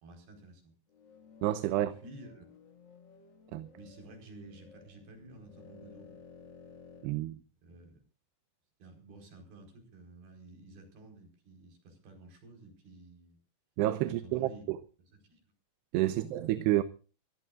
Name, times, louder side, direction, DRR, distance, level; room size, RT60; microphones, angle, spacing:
voice 1, 0.0-0.8 1.7-2.5 3.7-6.2 7.6-8.0 8.8-13.4 14.0-14.7 15.3-15.4 16.1-16.4, right 2 dB, 65° right, 6.6 m, -52 dB
sound 1, 0.9-7.1, left 5 dB, 40° left, 1.6 m, -55 dB
voice 2, 1.4-1.9 3.5-3.7 7.0-7.4 13.8-14.8 15.9-16.8, right 15 dB, 80° right, 2.9 m, -29 dB
25.0 x 16.5 x 2.5 m
omnidirectional pair, 4.8 m